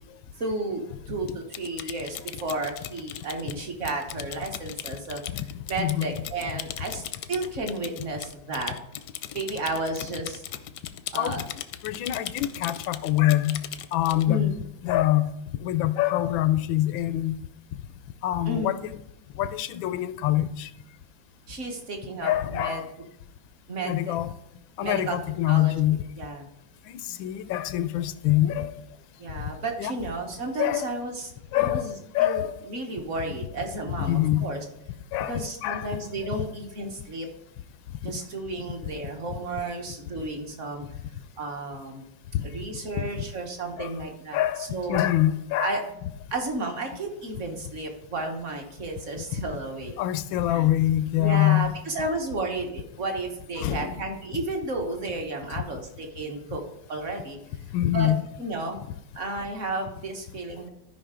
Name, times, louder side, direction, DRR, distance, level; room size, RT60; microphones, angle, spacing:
voice 1, 0.4-5.2 5.7-8.7 9.3-10.4 11.1-11.4 14.3-14.5 18.5-18.7 21.5-22.8 23.7-24.2 24.8-25.2 25.5-25.8 26.2-26.5 29.2-32.4 32.7-34.6 35.3-37.3 38.0-40.8 41.4-42.0 42.4-44.4 44.7-45.0 45.6-45.8 46.3-50.0 50.5-50.7 51.2-56.6 56.9-57.4 57.9-58.1 58.4-58.8 59.1-60.7, right 2 dB, 45° right, 1.3 m, -32 dB
Typing, 1.3-14.3, left 11 dB, 75° left, 1.0 m, -39 dB
voice 2, 5.3-6.2 11.2-11.5 11.8-13.6 13.9-14.6 14.8-15.3 15.6-17.3 18.2-19.0 19.3-20.7 22.2-22.9 23.8-24.3 24.8-26.0 26.9-28.7 29.8-30.0 30.6-30.9 31.5-32.7 33.9-34.5 35.1-35.9 36.2-36.5 38.0-38.1 42.3-42.4 43.0-43.2 43.8-43.9 44.3-45.8 49.3-49.4 50.0-51.7 53.6-54.0 57.7-58.3, left 13 dB, 90° left, 1.3 m, -25 dB
13.0 x 5.2 x 3.7 m
omnidirectional pair, 2.1 m